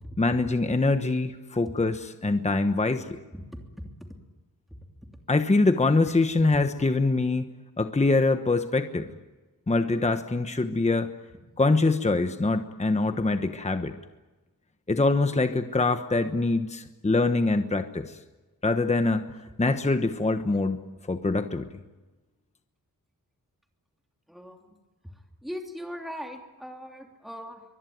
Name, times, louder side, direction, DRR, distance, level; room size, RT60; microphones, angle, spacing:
voice 1, 0.2-3.0 5.3-7.5 7.8-9.1 9.7-11.1 11.6-13.9 14.9-18.1 18.6-19.3 19.6-21.7, left 3 dB, 20° left, 8 dB, 1.1 m, -24 dB
voice 2, 3.3-4.1 24.3-24.7 25.4-27.6, equal, ahead, 3 dB, 3.1 m, -40 dB
24.0 x 21.0 x 9.4 m, 1.2 s
wide cardioid pair, 140°, 35 cm